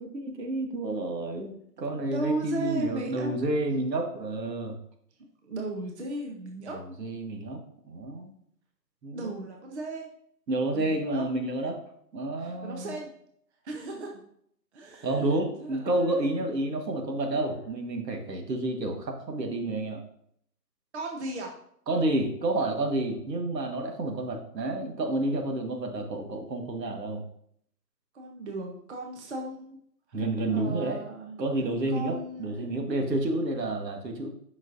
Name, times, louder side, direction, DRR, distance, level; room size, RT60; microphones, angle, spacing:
voice 1, 0.0-4.7 6.7-8.3 9.0-9.3 10.5-11.8 12.1-12.9 15.0-20.0 21.9-27.2 30.1-31.0 31.4-34.3, right 2 dB, 75° right, 3 dB, 1.6 m, -30 dB
voice 2, 2.1-3.3 5.4-6.8 9.1-10.1 10.7-11.3 12.4-13.1 13.6-14.1 14.7-16.4 20.9-21.5 28.1-29.8 30.1-30.2 30.5-31.4 31.9-32.7, right 2 dB, 40° right, 1 dB, 1.0 m, -36 dB
8.0 x 5.9 x 2.6 m, 0.67 s
hypercardioid pair, 170°, 50 cm